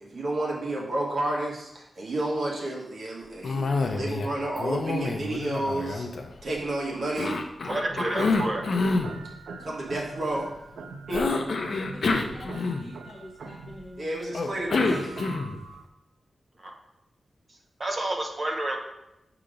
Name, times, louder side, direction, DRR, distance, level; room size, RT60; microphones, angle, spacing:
voice 1, 0.0-6.1 6.4-7.4 9.6-10.5 11.1-11.3 14.0-15.2, right 1 dB, 55° right, -3 dB, 1.2 m, -31 dB
Cough, 3.4-4.3 4.6-6.6 7.2-9.1 11.1-13.1 14.3-15.6, left 3 dB, 55° left, 0.5 m, -27 dB
voice 2, 7.7-8.6 16.6-16.7 17.8-18.8, right 1 dB, 30° right, 1 dB, 0.7 m, -29 dB
sound 1, 7.8-15.8, right 4 dB, 90° right, 0.5 m, -42 dB
voice 3, 11.9-14.1, left 1 dB, 20° left, -3 dB, 0.7 m, -45 dB
6.5 x 2.9 x 5.0 m, 0.90 s
wide cardioid pair, 170°, 0 cm